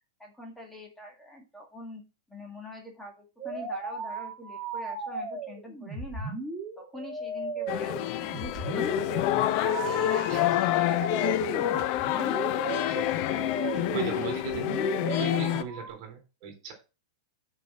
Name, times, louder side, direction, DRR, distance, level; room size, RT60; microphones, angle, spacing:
voice 1, 0.2-2.0 2.3-6.4 6.8-8.0 8.3-9.4 9.8-11.7, left 2 dB, 5° left, 0 dB, 1.8 m, -45 dB
sound 1, 3.4-15.9, right 3 dB, 10° right, 2.4 m, -36 dB
sound 2, 7.7-15.6, left 13 dB, 45° left, 0.7 m, -27 dB
voice 2, 9.8-10.2 10.5-10.7 11.9-16.7, right 7 dB, 50° right, 5 dB, 3.4 m, -40 dB
6.1 x 5.0 x 6.0 m, 0.30 s
hypercardioid pair, 130°, 3 cm